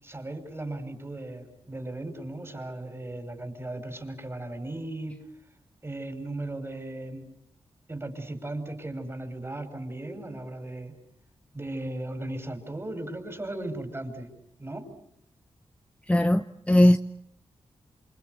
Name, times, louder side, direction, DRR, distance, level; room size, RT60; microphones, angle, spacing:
voice 1, 0.0-5.2 5.8-7.2 7.9-10.9 11.5-14.3 14.6-14.9, right 1 dB, 25° right, 6 dB, 6.1 m, -36 dB
voice 2, 16.1-17.0, left 1 dB, 10° left, 8 dB, 1.0 m, -19 dB
28.0 x 26.5 x 6.8 m, 0.73 s
cardioid pair, 70°, 10 cm